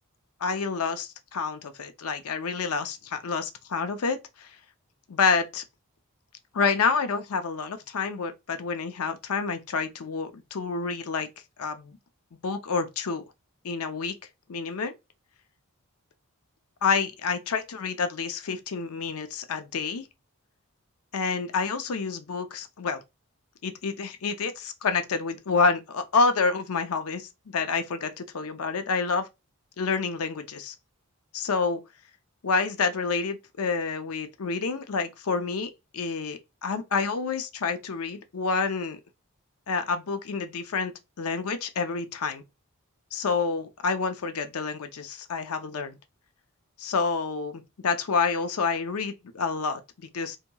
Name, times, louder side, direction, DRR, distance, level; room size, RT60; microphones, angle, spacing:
voice 1, 0.4-4.5 5.1-5.6 6.5-11.3 11.6-12.0 12.4-13.2 13.6-14.1 14.5-14.9 16.8-20.1 21.1-23.0 23.6-29.3 29.8-30.7 31.3-31.8 32.4-39.0 39.7-42.4 43.1-46.0 46.8-50.4, left 4 dB, 75° left, 0.5 m, -28 dB
2.8 x 2.7 x 2.2 m
head